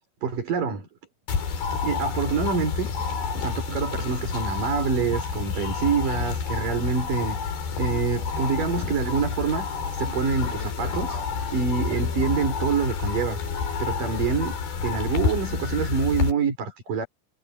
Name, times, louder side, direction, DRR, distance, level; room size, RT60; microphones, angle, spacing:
voice 1, 0.2-0.9 1.7-2.9 3.3-7.4 7.8-9.7 9.9-11.2 11.5-13.4 13.8-14.6 14.8-17.1, right 5 dB, 55° right, 6.9 m, -26 dB
sound 1, 1.3-16.3, left 5 dB, 70° left, 5.7 m, -29 dB
omnidirectional pair, 4.5 m